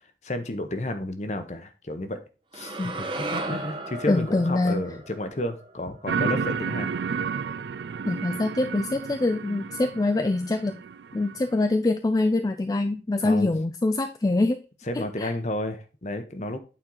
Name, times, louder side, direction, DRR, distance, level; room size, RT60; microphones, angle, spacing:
voice 1, 0.2-2.2 2.5-6.9 13.2-13.5 14.9-16.6, left 1 dB, 40° left, 9 dB, 0.9 m, -32 dB
sound 1, 2.5-6.8, right 2 dB, 30° right, 0.8 m, -36 dB
voice 2, 4.1-4.8 8.1-10.8 11.1-14.6 14.9-15.3, left 2 dB, 20° left, 7 dB, 0.3 m, -24 dB
sound 2, 6.1-11.6, right 6 dB, 75° right, 0.4 m, -31 dB
8.8 x 4.5 x 3.8 m, 0.34 s
head